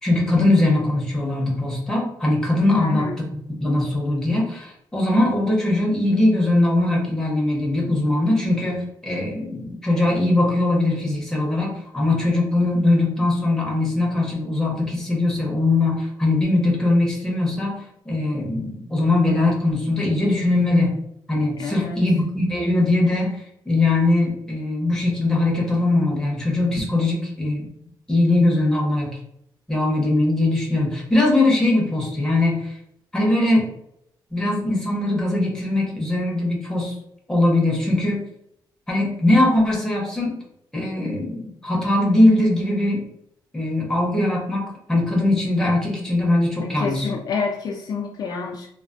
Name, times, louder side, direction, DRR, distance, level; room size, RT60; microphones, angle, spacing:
voice 1, 0.0-3.1 3.6-17.8 18.0-21.0 21.3-27.7 28.1-29.2 29.7-32.8 33.1-33.7 34.3-37.0 37.3-38.2 38.9-40.4 40.7-43.0 43.5-47.1, left 2 dB, 5° left, -3 dB, 0.8 m, -21 dB
voice 2, 2.7-3.2 21.6-22.0 46.6-48.7, left 4 dB, 50° left, 0 dB, 0.4 m, -28 dB
3.3 x 2.0 x 2.5 m, 0.75 s
cardioid pair, 145°, 8 cm